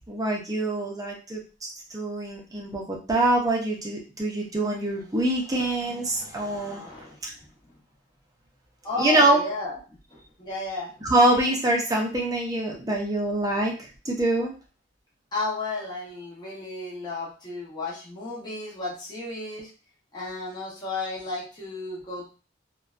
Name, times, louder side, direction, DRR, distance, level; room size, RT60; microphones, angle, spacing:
voice 1, 0.1-6.9 9.0-9.4 11.0-13.8 14.1-14.5, right 1 dB, 20° right, 0 dB, 0.6 m, -25 dB
voice 2, 6.6-7.2 8.8-11.4 15.3-19.7 20.1-22.3, left 3 dB, 20° left, -6 dB, 0.8 m, -34 dB
2.6 x 2.2 x 2.3 m, 0.35 s
head